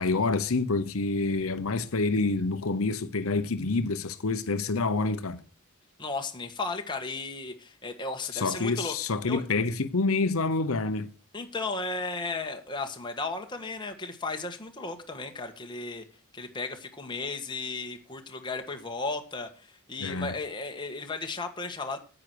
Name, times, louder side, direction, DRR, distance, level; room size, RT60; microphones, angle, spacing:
voice 1, 0.0-5.4 8.3-11.1 20.0-20.3, left 3 dB, 75° left, 0.9 m, -27 dB
voice 2, 6.0-8.9 9.3-9.4 11.3-16.0 16.3-22.0, left 3 dB, 20° left, 1.5 m, -35 dB
9.9 x 8.2 x 6.2 m
head